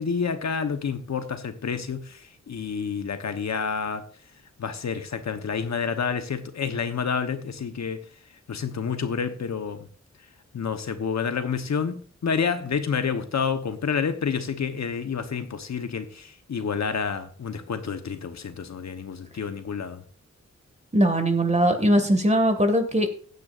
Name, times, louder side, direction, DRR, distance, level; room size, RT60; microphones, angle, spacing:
voice 1, 0.0-4.0 4.6-8.0 8.5-9.9 10.5-20.0, left 6 dB, 70° left, 8 dB, 1.1 m, -29 dB
voice 2, 20.9-23.2, equal, 25° right, 7 dB, 2.0 m, -20 dB
15.5 x 9.4 x 2.6 m, 0.42 s
wide cardioid pair, 90°, 29 cm